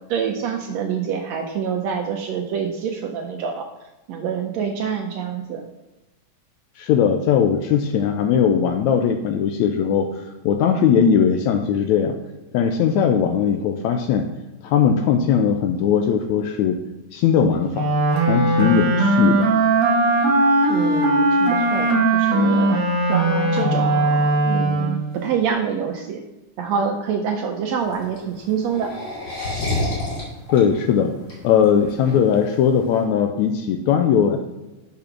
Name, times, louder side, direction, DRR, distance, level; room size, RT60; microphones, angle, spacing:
voice 1, 0.1-3.7 4.1-5.6 20.7-22.8 23.1-26.2 26.6-28.9, right 7 dB, 75° right, 3 dB, 1.6 m, -26 dB
voice 2, 6.8-10.1 10.5-12.2 12.5-14.3 14.6-16.8 17.1-17.9 18.2-19.5 30.5-31.1 31.4-34.4, left 7 dB, 80° left, 6 dB, 1.7 m, -19 dB
Wind instrument woodwind instrument, 17.7-25.1, right 2 dB, 50° right, 2.3 m, -19 dB
sound 1, 27.8-33.0, left 2 dB, 35° left, 3.0 m, -29 dB
6.7 x 5.5 x 5.9 m, 1.0 s
omnidirectional pair, 3.7 m